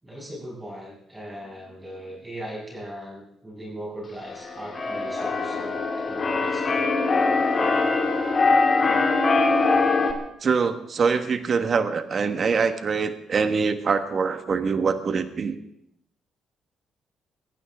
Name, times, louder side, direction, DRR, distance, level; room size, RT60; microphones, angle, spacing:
voice 1, 0.0-6.9, equal, 15° right, -3 dB, 6.6 m, -39 dB
Keyboard (musical), 4.2-10.1, left 3 dB, 40° left, 2.6 m, -22 dB
voice 2, 10.4-15.6, right 5 dB, 45° right, 9 dB, 1.4 m, -24 dB
23.0 x 15.5 x 3.6 m, 0.76 s
cardioid pair, 90°, 0 cm